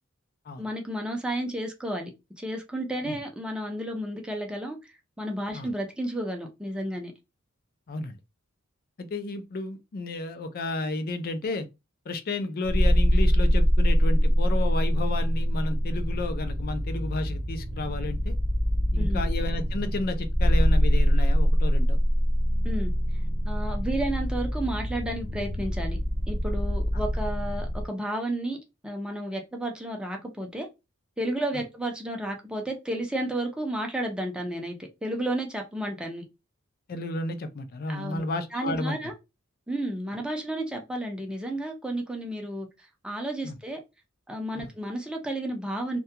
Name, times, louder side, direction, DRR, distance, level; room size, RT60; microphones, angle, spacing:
voice 1, 0.6-7.1 19.0-19.3 22.6-22.9 23.4-26.0 26.3-28.6 28.8-30.7 31.2-36.2 37.9-38.3 38.5-39.1 39.7-42.7 43.0-43.8 44.3-46.0, right 1 dB, 5° right, 0.5 m, -32 dB
voice 2, 9.0-11.7 12.1-18.3 18.9-22.0 26.9-27.0 36.9-39.0 43.4-43.5 44.5-44.7, left 2 dB, 45° left, 0.4 m, -32 dB
sound 1, 12.7-27.9, equal, 40° right, 0.8 m, -24 dB
2.3 x 2.2 x 2.7 m
head